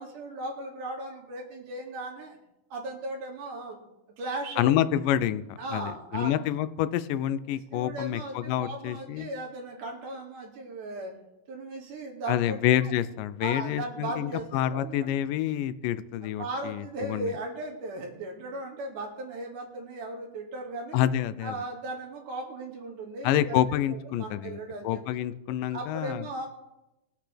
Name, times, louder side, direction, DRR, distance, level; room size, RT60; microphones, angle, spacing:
voice 1, 0.0-2.4 2.7-3.8 4.2-4.7 5.6-6.3 7.7-11.1 11.5-12.6 12.8-12.9 13.4-15.1 16.2-21.0 21.4-23.6 24.2-25.2 25.7-26.5, right 2 dB, 75° right, -1 dB, 3.5 m, -37 dB
voice 2, 4.6-9.3 12.3-17.3 20.9-21.6 23.2-24.6 24.8-26.3, left 11 dB, 90° left, 14 dB, 2.2 m, -28 dB
21.5 x 8.1 x 3.4 m, 0.94 s
omnidirectional pair, 3.7 m